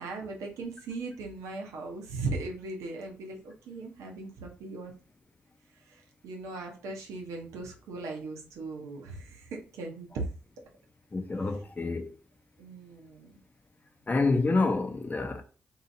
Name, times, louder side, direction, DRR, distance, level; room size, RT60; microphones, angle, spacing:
voice 1, 0.0-4.9 5.9-10.2 12.6-13.4, right 3 dB, 75° right, 0.8 m, -38 dB
voice 2, 11.1-12.1 14.1-15.4, left 3 dB, 30° left, 0.7 m, -27 dB
2.9 x 2.7 x 2.6 m
hypercardioid pair, 40°, 5 cm